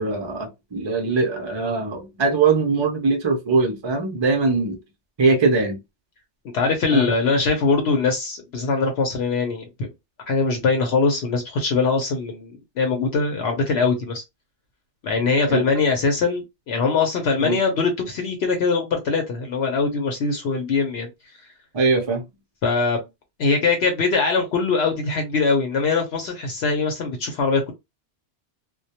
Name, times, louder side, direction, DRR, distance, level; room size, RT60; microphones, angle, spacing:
voice 1, 0.0-4.8 5.2-5.8 6.9-7.1 15.5-15.6 17.4-17.6 21.7-22.2, right 4 dB, 40° right, 0.4 m, -21 dB
voice 2, 6.4-9.9 10.3-14.2 15.0-21.1 22.6-23.0 23.4-27.7, left 4 dB, 70° left, 0.9 m, -22 dB
2.1 x 2.1 x 2.8 m
omnidirectional pair, 1.2 m